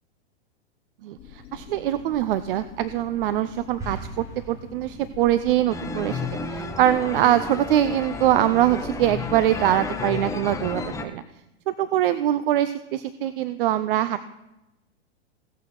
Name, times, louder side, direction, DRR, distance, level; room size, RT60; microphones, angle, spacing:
voice 1, 1.0-11.2 11.7-14.2, right 12 dB, 55° right, 14 dB, 0.6 m, -23 dB
sound 1, 1.2-9.5, left 7 dB, 30° left, 3.9 m, -45 dB
sound 2, 3.8-5.4, right 2 dB, 10° right, 3.4 m, -39 dB
sound 3, 5.7-11.0, left 4 dB, 10° left, 0.9 m, -32 dB
16.5 x 6.4 x 5.9 m, 0.95 s
hypercardioid pair, 110°, 33 cm